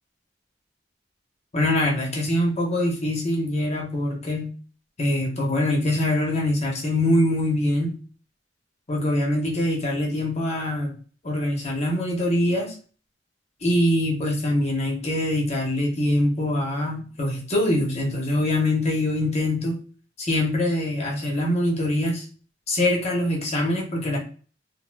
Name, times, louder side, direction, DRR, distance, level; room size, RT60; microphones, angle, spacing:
voice 1, 1.5-4.5 5.0-8.0 8.9-10.9 11.2-12.7 13.6-19.8 20.2-22.2 22.7-24.2, left 1 dB, 35° left, -1 dB, 0.8 m, -23 dB
4.2 x 2.1 x 2.2 m, 0.40 s
head